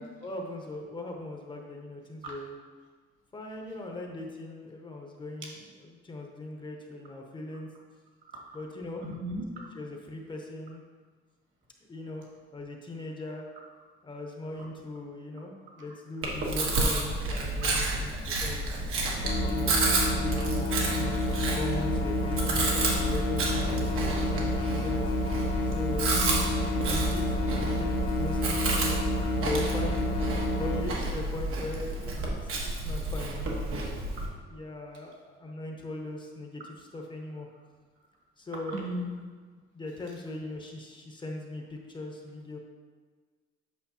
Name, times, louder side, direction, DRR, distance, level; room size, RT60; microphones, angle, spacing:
voice 1, 0.0-2.5 3.3-7.7 8.5-9.0 9.7-10.8 11.9-12.2 12.5-13.5 14.0-18.7 19.4-19.8 20.1-25.0 25.7-26.1 26.8-29.1 29.4-30.1 30.6-34.0 34.5-37.5 38.4-38.9 39.7-42.6, left 2 dB, 25° left, 1 dB, 0.7 m, -39 dB
voice 2, 9.0-9.7 15.8-15.9 26.1-26.5 28.6-28.7 38.7-39.1, equal, 65° right, -3 dB, 1.8 m, -36 dB
Chewing mastication, 16.2-34.3, right 2 dB, 90° right, 1.3 m, -30 dB
sound 1, 19.2-30.8, left 1 dB, 50° left, 0.8 m, -29 dB
8.2 x 6.1 x 2.8 m, 1.5 s
cardioid pair, 170°, 21 cm